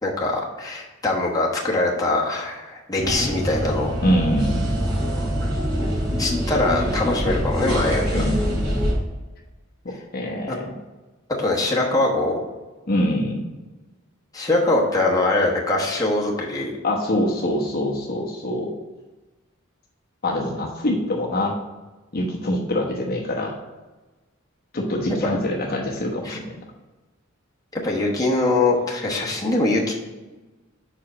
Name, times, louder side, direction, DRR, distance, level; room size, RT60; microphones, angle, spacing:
voice 1, 0.0-3.9 6.2-8.2 10.5-10.6 11.4-12.4 14.3-16.7 25.2-25.3 26.2-26.4 27.7-29.9, left 2 dB, 20° left, -3 dB, 1.2 m, -22 dB
sound 1, 3.0-8.9, equal, 85° right, 2.6 m, -24 dB
voice 2, 4.0-4.8 8.1-8.4 9.8-10.7 12.9-13.4 16.8-18.7 20.2-21.6 22.1-23.5 24.7-26.5, left 1 dB, 45° left, -1 dB, 1.0 m, -24 dB
5.4 x 4.8 x 6.2 m, 1.2 s
head